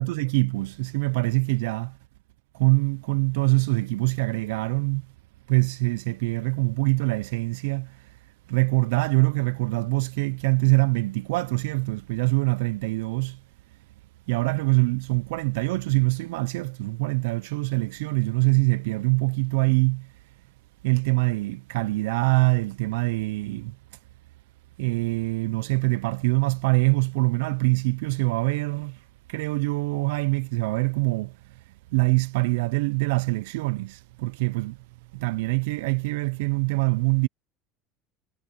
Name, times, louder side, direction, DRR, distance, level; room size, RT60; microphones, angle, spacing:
voice 1, 0.0-2.0 2.5-5.0 5.5-8.1 8.5-13.4 14.3-20.1 20.8-23.8 24.8-34.8 35.1-37.3, right 26 dB, 85° right, 0.5 m, -24 dB
supercardioid pair, 110°, 0 cm